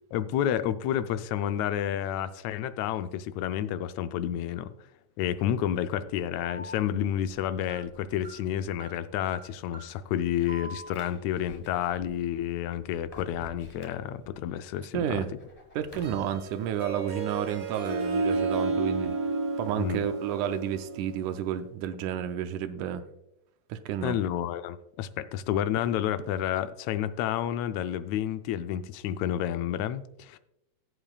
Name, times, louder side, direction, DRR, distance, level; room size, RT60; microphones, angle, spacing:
voice 1, 0.1-4.7 5.2-15.2 19.8-20.1 24.0-30.4, left 10 dB, 80° left, 11 dB, 1.7 m, -30 dB
Alarm, 6.4-14.5 14.9-16.1, equal, 60° left, 0.3 m, -47 dB
voice 2, 14.9-15.3 15.8-19.1 19.6-23.0 23.7-24.2, right 9 dB, 90° right, 8 dB, 2.1 m, -31 dB
Harp, 15.9-21.4, right 3 dB, 50° right, 0.9 m, -31 dB
17.5 x 8.1 x 2.3 m, 0.84 s
omnidirectional pair, 3.5 m